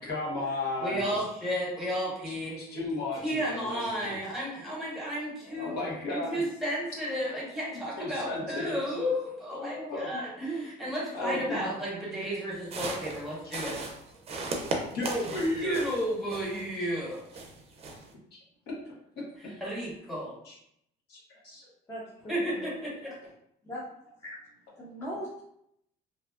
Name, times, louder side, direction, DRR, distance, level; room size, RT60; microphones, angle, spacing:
voice 1, 0.0-1.2 2.1-4.2 5.5-6.4 8.0-8.7 9.5-10.1 11.1-11.6 14.9-15.8 18.3-18.4 18.8-18.9 20.4-20.6 21.1-21.6, left 2 dB, 75° left, -5 dB, 1.1 m, -34 dB
voice 2, 0.8-2.6 3.2-5.8 6.1-10.5 10.8-13.8 15.6-17.2 19.6-20.3 22.3-23.1, equal, ahead, -6 dB, 1.2 m, -32 dB
voice 3, 10.1-10.7 21.9-22.7 23.6-23.9 24.2-24.4 24.8-25.4, right 1 dB, 15° left, -6 dB, 0.6 m, -39 dB
sound 1, 12.6-16.8 17.1-18.1, right 3 dB, 40° right, 0.5 m, -37 dB
2.6 x 2.2 x 2.3 m, 0.74 s
cardioid pair, 110°, 17 cm